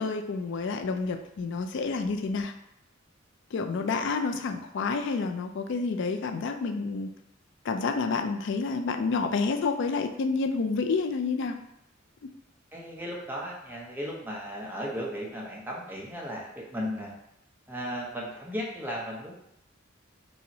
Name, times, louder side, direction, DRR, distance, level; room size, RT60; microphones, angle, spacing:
voice 1, 0.0-2.5 3.5-7.1 7.6-11.6, left 4 dB, 65° left, 6 dB, 0.4 m, -29 dB
voice 2, 12.7-17.1 17.7-19.3, equal, 10° right, -3 dB, 0.7 m, -36 dB
5.4 x 2.1 x 2.7 m, 0.78 s
head